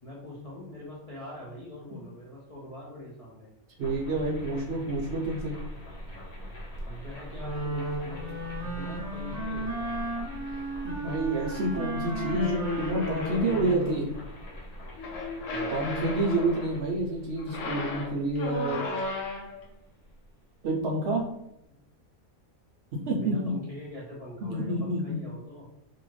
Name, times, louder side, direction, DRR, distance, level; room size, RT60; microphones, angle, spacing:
voice 1, 0.0-3.5 6.8-10.0 15.5-15.8 18.6-18.8 23.2-25.7, left 1 dB, 45° left, -6 dB, 0.4 m, -43 dB
sound 1, 3.8-20.7, equal, 90° left, 1.3 m, -43 dB
voice 2, 3.8-5.5 10.8-14.1 15.7-18.8 20.6-21.3 23.1-23.5 24.5-25.2, right 2 dB, 65° right, -1 dB, 0.7 m, -28 dB
Wind instrument woodwind instrument, 7.3-14.0, right 1 dB, 15° right, 0.9 m, -35 dB
sound 2, 12.1-14.0 15.0-16.8 17.4-19.7, left 3 dB, 70° left, 1.0 m, -35 dB
2.7 x 2.4 x 3.0 m, 0.80 s
omnidirectional pair, 1.4 m